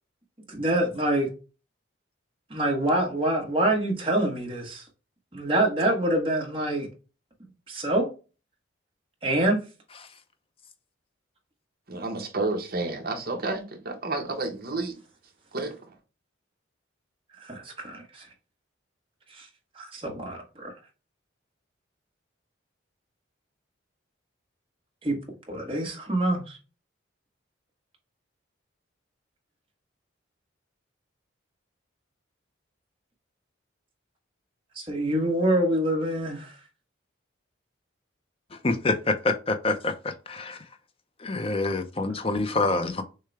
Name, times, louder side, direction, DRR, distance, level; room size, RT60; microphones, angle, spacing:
voice 1, 0.5-1.3 2.5-4.8 5.3-6.9 7.7-8.1 9.2-9.6 17.4-18.3 19.3-19.5 19.7-20.7 25.0-25.2 25.5-26.6 34.7-36.5, right 1 dB, 25° right, 1.3 m, -26 dB
voice 2, 11.9-15.0 15.5-15.9, right 2 dB, 50° right, 1.1 m, -31 dB
voice 3, 38.6-40.6 41.2-43.0, left 3 dB, 30° left, 0.6 m, -26 dB
6.5 x 2.3 x 3.3 m
head